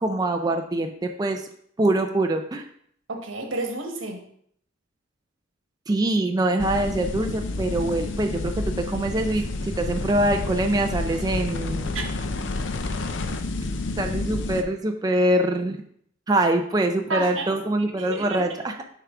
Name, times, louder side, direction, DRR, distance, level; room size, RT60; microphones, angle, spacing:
voice 1, 0.0-1.4 1.8-2.6 5.9-11.9 13.6-13.7 14.0-15.8 16.3-18.8, right 1 dB, 20° right, 4 dB, 0.4 m, -24 dB
voice 2, 3.1-4.2 11.9-12.0 17.1-17.6 18.0-18.4, right 2 dB, 85° right, 3 dB, 1.2 m, -30 dB
sound 1, 6.6-14.6, left 2 dB, 65° left, 0.5 m, -29 dB
6.8 x 4.7 x 3.6 m, 0.65 s
head